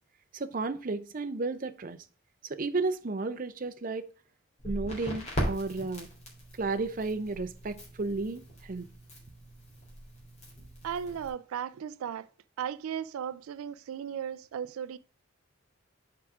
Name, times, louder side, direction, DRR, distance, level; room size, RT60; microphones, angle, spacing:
voice 1, 0.3-2.0 2.4-4.1 4.6-6.1 6.6-8.9, right 3 dB, 40° right, 0.6 m, -33 dB
Crackle, 4.6-11.3, equal, 35° left, 3.1 m, -39 dB
voice 2, 10.8-12.3 12.6-15.0, right 8 dB, 90° right, 0.3 m, -36 dB
6.0 x 4.8 x 4.8 m
head